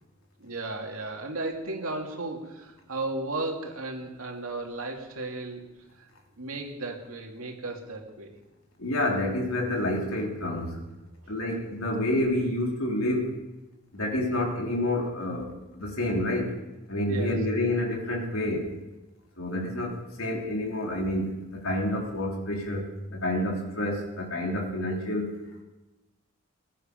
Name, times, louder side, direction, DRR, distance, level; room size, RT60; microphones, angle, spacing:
voice 1, 0.4-5.7 6.0-6.1 6.4-8.3 17.1-17.3, right 2 dB, 80° right, 2 dB, 2.5 m, -35 dB
voice 2, 8.8-10.8 11.3-13.4 13.9-16.5 16.9-18.7 19.4-25.3, left 1 dB, 80° left, -1 dB, 3.4 m, -28 dB
21.0 x 11.5 x 5.2 m, 1.0 s
head